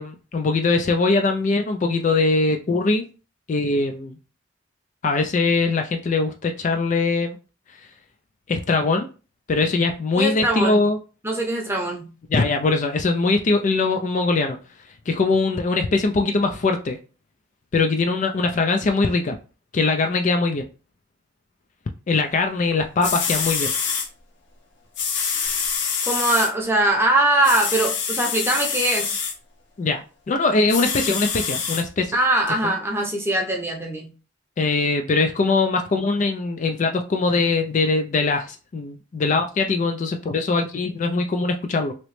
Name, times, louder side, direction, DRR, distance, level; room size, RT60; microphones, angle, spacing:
voice 1, 0.0-3.0 3.5-4.2 5.0-7.4 8.5-9.1 9.5-11.0 12.3-14.6 15.1-17.0 17.7-19.4 19.7-20.7 22.1-23.7 29.8-32.2 32.6-32.7 34.6-41.9, left 3 dB, 40° left, 5 dB, 0.3 m, -21 dB
voice 2, 10.2-10.8 11.2-12.1 26.0-29.2 32.1-34.1, right 1 dB, 10° right, 0 dB, 0.7 m, -22 dB
sound 1, 22.7-22.8 23.0-24.1 25.0-26.5 27.4-29.3 30.7-31.8 32.5-32.6, left 6 dB, 60° left, 0.8 m, -25 dB
3.0 x 2.9 x 3.1 m, 0.34 s
head